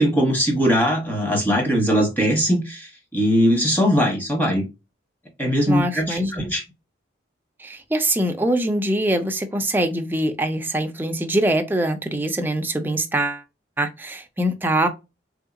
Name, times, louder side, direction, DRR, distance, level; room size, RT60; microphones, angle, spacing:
voice 1, 0.0-4.6 5.4-6.6, equal, 10° left, 1.0 m, -20 dB
voice 2, 5.7-6.3 7.6-13.4 13.8-14.9, right 1 dB, 10° right, 0.4 m, -23 dB
3.5 x 2.7 x 2.5 m
head